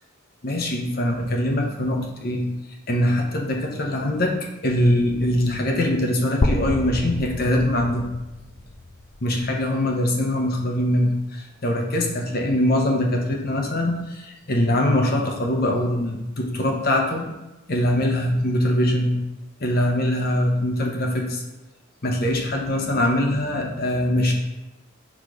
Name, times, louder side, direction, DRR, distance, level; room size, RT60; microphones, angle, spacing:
voice 1, 0.4-2.4 2.9-4.3 4.6-8.0 9.2-17.2 17.7-19.1 19.6-21.4 22.0-24.3, left 1 dB, 45° left, 1 dB, 0.8 m, -22 dB
sound 1, 6.4-10.4, left 2 dB, 30° left, 0.4 m, -29 dB
6.1 x 3.2 x 4.8 m, 1.0 s
head